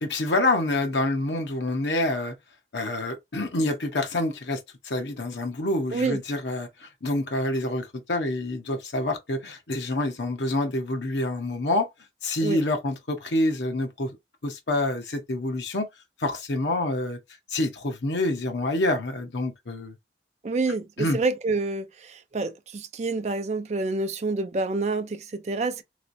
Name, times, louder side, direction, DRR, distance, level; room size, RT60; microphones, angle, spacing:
voice 1, 0.0-2.3 2.7-11.9 12.2-14.1 14.4-15.9 16.2-17.2 17.5-19.9 21.0-21.2, left 2 dB, 80° left, 1.0 m, -27 dB
voice 2, 20.4-25.8, right 3 dB, 40° right, 0.4 m, -28 dB
3.1 x 3.0 x 2.6 m
head